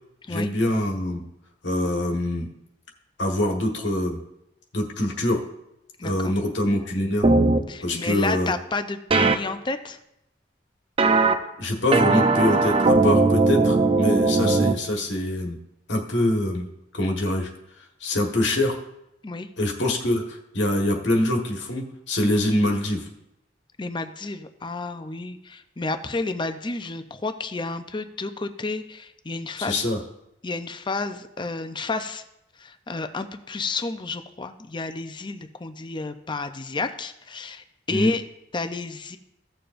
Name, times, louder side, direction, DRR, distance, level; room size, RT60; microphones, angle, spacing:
voice 1, 0.3-1.2 1.6-2.5 3.2-4.2 4.7-5.4 6.0-7.3 7.8-8.5 11.6-15.6 15.9-16.7 16.9-17.5 18.0-18.8 19.6-23.0 29.6-30.0 37.9-38.1, left 1 dB, 85° left, 1 dB, 1.5 m, -24 dB
voice 2, 6.0-6.3 7.7-10.0 19.2-19.5 23.8-29.8 30.4-32.2 32.6-38.2 38.5-39.2, left 3 dB, 25° left, 9 dB, 0.6 m, -31 dB
sound 1, 7.2-7.6 9.1-9.4 11.0-11.3 11.9-14.7, right 3 dB, 30° right, 0.6 m, -18 dB
16.0 x 6.8 x 2.6 m, 0.83 s
head